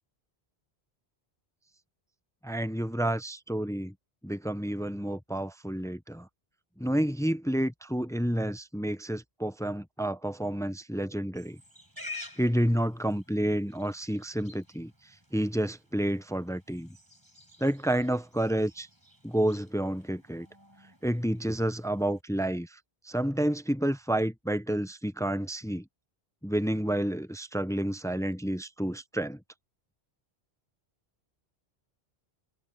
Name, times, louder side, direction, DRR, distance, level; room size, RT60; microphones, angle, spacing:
voice 1, 2.4-3.9 4.2-6.3 6.8-11.6 12.4-14.9 15.3-17.0 17.6-18.9 19.2-20.5 21.0-22.8 23.0-25.8 26.4-29.4, right 1 dB, 5° left, 0.4 m, -30 dB
Livestock farm animals working animals, 11.4-22.2, left 2 dB, 20° right, 6.3 m, -50 dB
omnidirectional pair, 1.0 m